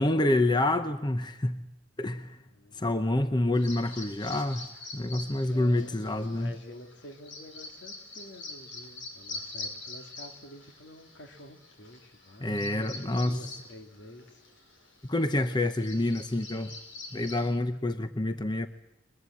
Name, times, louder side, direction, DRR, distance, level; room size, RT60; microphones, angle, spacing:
voice 1, 0.0-1.6 2.0-2.4 2.7-4.7 4.9-6.5 12.4-13.5 15.0-16.7 17.1-18.7, left 1 dB, 20° left, 9 dB, 0.7 m, -27 dB
voice 2, 2.5-2.8 5.4-14.4, left 1 dB, 65° left, 5 dB, 2.4 m, -48 dB
Bird vocalization bird call bird song, 3.5-17.5, left 2 dB, 85° left, 6.4 m, -45 dB
22.0 x 22.0 x 8.5 m, 0.97 s
head